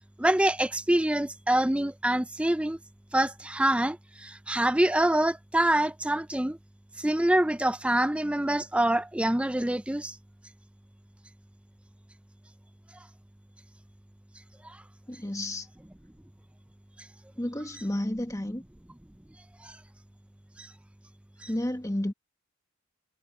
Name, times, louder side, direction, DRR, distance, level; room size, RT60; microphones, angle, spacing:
voice 1, 0.2-2.8 3.1-6.6 7.0-10.2 14.6-14.8 19.6-19.8 20.6-20.7 21.4-21.5, right 1 dB, 5° right, 0.4 m, -26 dB
voice 2, 15.1-15.7 17.4-18.6 21.5-22.1, left 1 dB, 15° left, 1.2 m, -31 dB
head